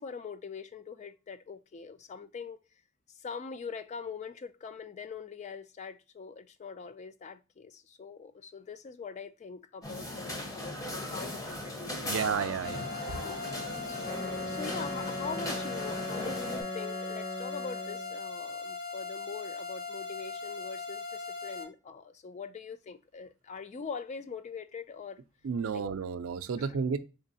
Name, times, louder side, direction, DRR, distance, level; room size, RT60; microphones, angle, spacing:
voice 1, 0.0-2.6 3.1-12.2 13.0-13.4 13.9-25.2 25.7-25.9 26.6-26.8, left 5 dB, 35° left, 0.3 m, -43 dB
sound 1, 9.8-16.6, left 1 dB, 15° left, 0.8 m, -38 dB
voice 2, 12.0-12.8 25.4-27.0, right 6 dB, 70° right, 0.4 m, -31 dB
sound 2, 12.6-21.6, left 4 dB, 50° left, 1.7 m, -39 dB
Wind instrument woodwind instrument, 14.0-18.2, left 1 dB, 70° left, 2.2 m, -39 dB
3.8 x 3.3 x 2.6 m
head